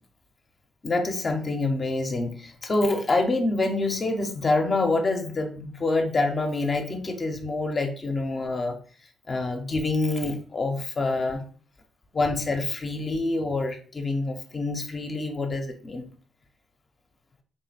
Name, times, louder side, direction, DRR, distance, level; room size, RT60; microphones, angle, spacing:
voice 1, 0.8-8.8 9.3-11.4 12.1-16.1, left 2 dB, 35° left, 4 dB, 0.7 m, -26 dB
3.8 x 2.1 x 4.1 m, 0.42 s
cardioid pair, 90°, 0 cm